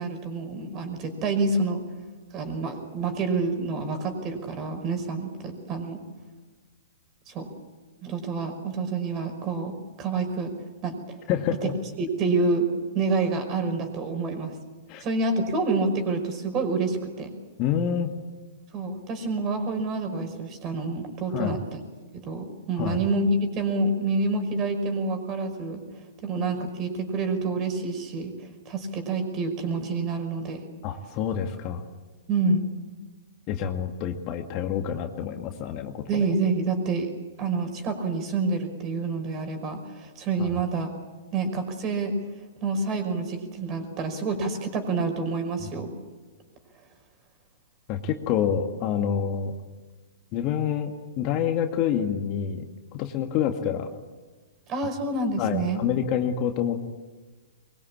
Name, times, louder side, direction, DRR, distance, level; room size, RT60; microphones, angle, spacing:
voice 1, 0.0-1.8 2.3-6.0 7.3-7.5 8.0-10.5 10.8-11.0 12.0-12.7 12.9-14.5 15.0-17.3 18.7-21.8 22.2-23.3 23.5-25.8 26.2-28.3 28.7-30.6 32.3-32.7 36.1-37.1 37.4-40.9 41.3-42.1 42.6-45.9 54.7-55.8, right 3 dB, 30° right, 7 dB, 5.4 m, -28 dB
voice 2, 11.3-11.7 14.9-15.0 17.6-18.1 21.3-21.6 22.8-23.0 30.8-31.8 33.5-36.2 40.4-40.6 45.6-45.7 47.9-49.5 50.3-52.6 52.9-53.9 55.4-56.9, left 8 dB, 35° left, 5 dB, 2.1 m, -27 dB
23.0 x 22.5 x 8.7 m, 1.3 s
figure-of-eight pair, 115°, 0 cm